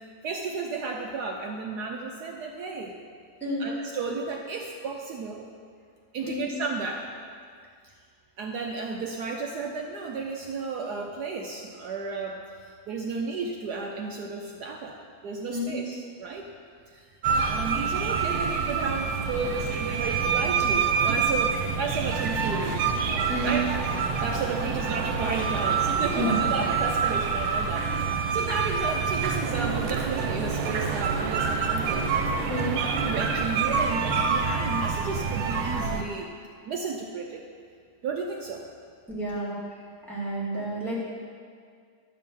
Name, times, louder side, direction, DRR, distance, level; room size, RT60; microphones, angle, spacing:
voice 1, 0.2-2.9 3.6-5.5 6.1-7.1 8.4-12.4 12.9-15.0 15.2-16.4 16.9-17.1 17.4-22.8 23.4-23.6 24.2-27.9 28.3-32.1 32.8-36.3 36.6-37.4 38.0-38.7, right 4 dB, 70° right, 1 dB, 1.0 m, -33 dB
voice 2, 3.4-3.7 6.2-6.5 15.5-15.7 23.3-23.5 26.2-26.4 32.5-32.8 39.1-39.8 40.1-41.0, equal, ahead, -9 dB, 2.1 m, -30 dB
sound 1, 17.2-36.0, right 5 dB, 90° right, 1.5 m, -27 dB
10.5 x 3.6 x 6.9 m, 2.1 s
omnidirectional pair, 2.2 m